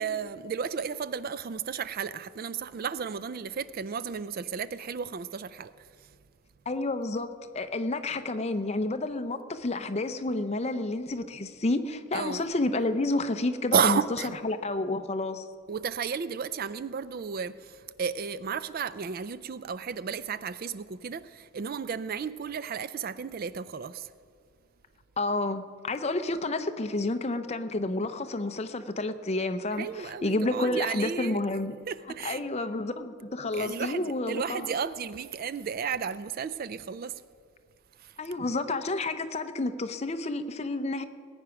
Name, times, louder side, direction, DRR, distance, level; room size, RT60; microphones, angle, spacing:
voice 1, 0.0-5.7 12.1-12.4 13.7-14.4 15.7-24.1 29.8-31.4 31.9-32.4 33.5-37.1, right 6 dB, 40° right, 0.3 m, -33 dB
voice 2, 6.7-15.5 25.2-31.8 32.2-34.7 38.2-41.0, left 2 dB, 30° left, 0.6 m, -30 dB
19.5 x 9.0 x 5.9 m
head